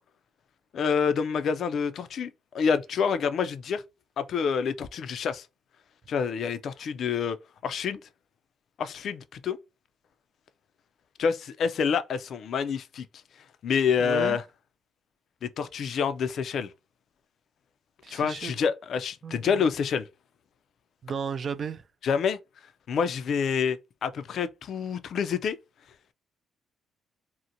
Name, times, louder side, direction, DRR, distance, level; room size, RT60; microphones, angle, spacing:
voice 1, 0.7-2.3 2.5-3.8 4.2-5.5 6.1-7.4 7.6-8.0 8.8-9.6 11.2-13.1 13.6-14.4 15.4-16.7 18.1-20.1 22.0-22.4 22.9-25.6, left 6 dB, 65° left, 0.3 m, -27 dB
voice 2, 14.0-14.4 18.0-18.6 19.2-19.7 21.0-21.8, right 6 dB, 50° right, 0.3 m, -34 dB
2.7 x 2.1 x 2.5 m
cardioid pair, 90°, 0 cm